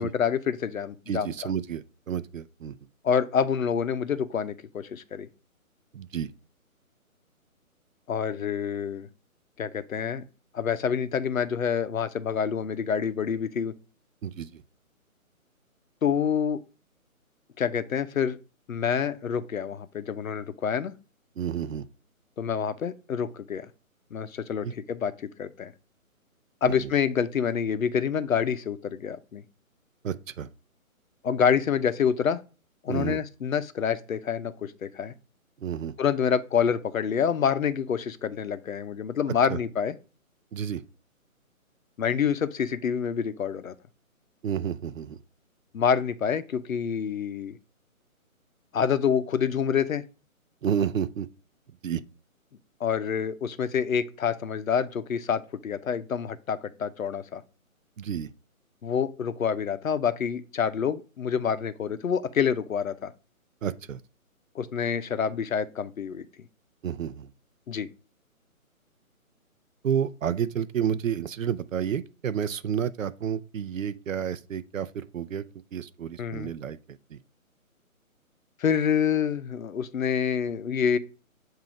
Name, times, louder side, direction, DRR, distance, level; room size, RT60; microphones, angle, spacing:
voice 1, 0.0-1.3 3.0-5.3 8.1-9.1 9.6-10.2 10.5-13.7 16.0-16.6 17.6-18.4 18.7-20.9 22.4-23.7 24.1-25.7 26.6-29.4 31.2-32.4 32.8-35.1 36.0-39.9 42.0-43.7 45.7-47.6 48.7-50.0 52.8-57.4 58.8-63.1 64.5-66.3 67.7-67.9 76.2-76.5 78.6-81.0, left 7 dB, 70° left, 0.8 m, -27 dB
voice 2, 1.1-2.7 5.9-6.3 14.2-14.6 21.4-21.9 24.6-24.7 26.6-26.9 30.0-30.5 32.9-33.2 35.6-35.9 39.5-39.6 40.5-40.8 44.4-45.2 50.6-51.3 51.8-52.0 58.0-58.3 63.6-64.0 66.8-67.3 69.8-75.4 75.7-77.2, right 8 dB, 65° right, 0.6 m, -30 dB
7.7 x 2.7 x 5.1 m
hypercardioid pair, 165°, 43 cm